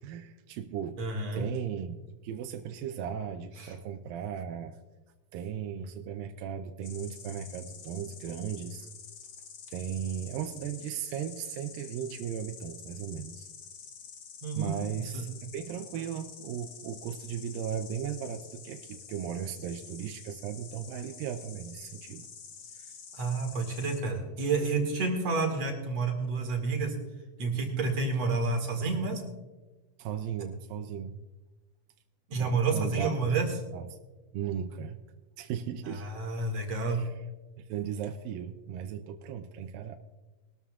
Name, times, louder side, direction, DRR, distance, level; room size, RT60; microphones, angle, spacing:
voice 1, 0.0-1.0 1.3-2.0 2.2-4.8 5.3-8.9 9.7-13.5 14.5-22.3 22.8-22.9 30.0-31.3 32.4-33.3 33.7-33.9 34.3-35.0 35.4-36.1 36.9-37.2 37.6-40.0, right 8 dB, 85° right, 6 dB, 2.4 m, -36 dB
voice 2, 1.0-1.5 3.6-3.7 14.4-14.7 15.1-15.2 23.1-26.9 27.4-29.2 32.3-33.5 35.9-37.0, right 3 dB, 50° right, 2 dB, 2.9 m, -29 dB
Insect, 6.8-24.0, left 6 dB, 65° left, 1.2 m, -48 dB
22.5 x 13.0 x 2.4 m, 1.2 s
omnidirectional pair, 4.0 m